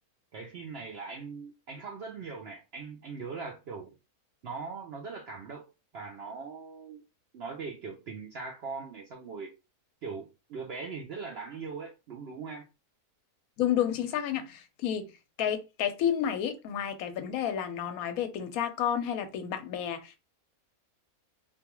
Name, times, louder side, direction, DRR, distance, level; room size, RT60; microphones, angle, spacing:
voice 1, 0.3-3.9 4.4-5.7 5.9-7.0 7.3-9.5 10.0-12.7, right 4 dB, 70° right, 0.6 m, -40 dB
voice 2, 13.6-15.1 15.4-20.2, left 9 dB, 75° left, 1.0 m, -30 dB
2.6 x 2.3 x 2.9 m
omnidirectional pair, 1.6 m